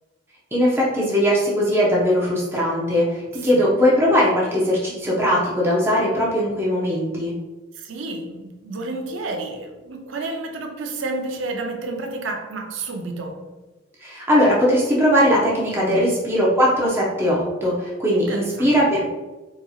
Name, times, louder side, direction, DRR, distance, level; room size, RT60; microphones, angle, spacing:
voice 1, 0.5-7.3 14.0-19.1, equal, 10° right, 0.6 m, -19 dB
voice 2, 3.1-3.6 7.7-13.5 15.8-16.2 18.1-18.7, right 2 dB, 75° right, 0.5 m, -31 dB
4.0 x 2.8 x 2.3 m
head